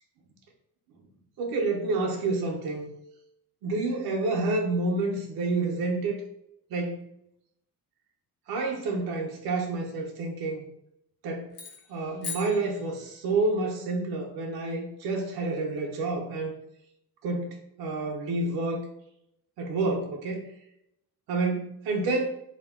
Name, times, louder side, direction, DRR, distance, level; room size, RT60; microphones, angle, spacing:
voice 1, 1.4-2.9 3.6-6.2 6.7-7.0 8.5-10.6 11.2-11.5 11.9-16.6 17.2-18.9 19.6-20.4 21.3-22.3, right 3 dB, 85° right, 0 dB, 0.6 m, -29 dB
sound 1, 11.5-13.4, left 5 dB, 65° left, 1.0 m, -41 dB
2.3 x 2.1 x 3.4 m, 0.77 s
cardioid pair, 100°, 36 cm